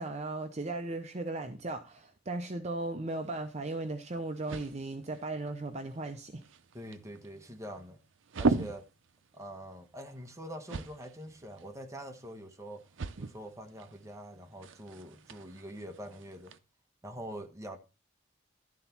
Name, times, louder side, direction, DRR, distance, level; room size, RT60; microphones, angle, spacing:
voice 1, 0.0-6.4, right 2 dB, 35° right, 0.6 m, -37 dB
sound 1, 3.2-16.6, right 4 dB, 75° right, 0.6 m, -40 dB
voice 2, 6.7-8.0 8.4-8.9 9.3-12.8 13.2-16.6 17.0-17.8, equal, 15° right, 1.0 m, -44 dB
12.0 x 4.0 x 5.8 m
head